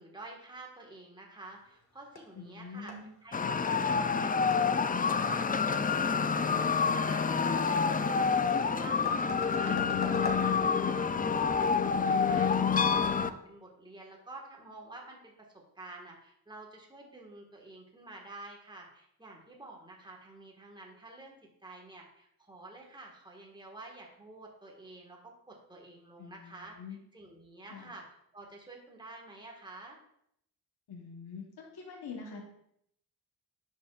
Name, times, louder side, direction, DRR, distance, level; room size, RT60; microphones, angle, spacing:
voice 1, 0.0-2.9 3.2-5.9 6.2-15.3 15.7-21.3 21.6-25.2 25.5-26.7 27.1-28.0 28.3-30.0, right 2 dB, 10° right, -1 dB, 1.6 m, -49 dB
sound 1, 1.5-13.3, left 2 dB, 40° left, 1.5 m, -47 dB
voice 2, 2.3-3.1 26.2-27.0 27.7-27.9 30.9-32.4, left 5 dB, 70° left, -1 dB, 1.3 m, -45 dB
sound 2, 3.3-13.3, left 5 dB, 25° left, 0.3 m, -28 dB
10.0 x 5.4 x 2.4 m, 0.73 s
cardioid pair, 80°, 39 cm